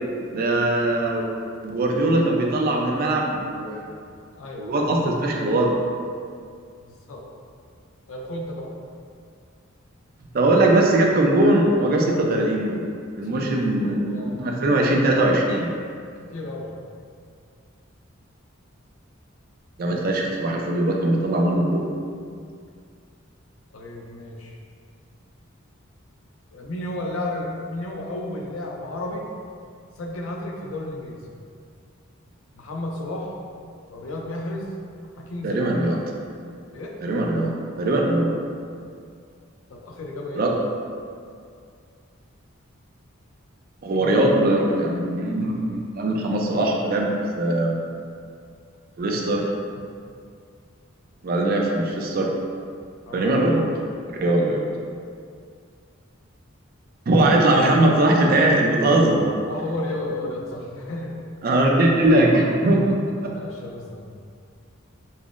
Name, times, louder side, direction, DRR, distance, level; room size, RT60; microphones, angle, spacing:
voice 1, 0.3-1.3 1.6-3.9 4.6-5.7 10.3-12.8 13.2-15.7 19.8-21.8 35.4-36.0 37.0-37.5 37.8-38.3 40.3-40.5 43.8-47.8 49.0-49.5 51.2-52.3 53.1-53.7 54.1-54.7 57.1-59.4 61.4-63.0 63.2-63.3, right 1 dB, 45° right, 0 dB, 0.4 m, -20 dB
voice 2, 4.0-4.7 6.8-7.2 8.1-8.7 12.0-12.2 13.2-13.4 13.7-14.4 15.0-15.1 16.3-16.7 23.7-24.5 26.5-29.3 30.0-31.2 32.5-33.3 33.9-34.8 35.2-35.8 36.7-36.9 39.7-40.4 53.1-53.3 59.5-61.2 63.3-64.1, left 1 dB, 70° left, -1 dB, 0.5 m, -33 dB
5.3 x 2.0 x 2.4 m, 2.2 s
head